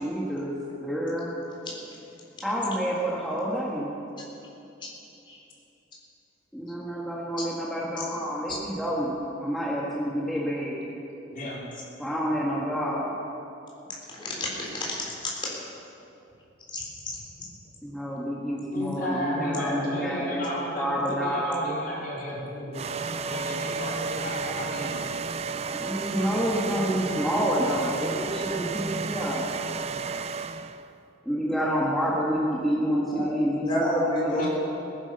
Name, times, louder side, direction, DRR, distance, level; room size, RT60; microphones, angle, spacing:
voice 1, 0.0-0.5 0.8-1.3 2.4-4.0 6.5-9.1 9.4-10.8 12.0-13.1 17.8-21.7 25.7-29.5 31.2-34.5, equal, ahead, -6 dB, 1.6 m, -28 dB
voice 2, 11.1-11.7 18.7-25.0 34.4-34.5, equal, 45° left, -5 dB, 3.9 m, -35 dB
voice 3, 14.1-15.0 16.7-16.8 32.9-33.3 33.6-34.5, left 1 dB, 25° left, -4 dB, 3.9 m, -29 dB
sound 1, 22.7-30.9, right 5 dB, 30° right, 0.4 m, -32 dB
17.5 x 10.5 x 6.8 m, 2.8 s
head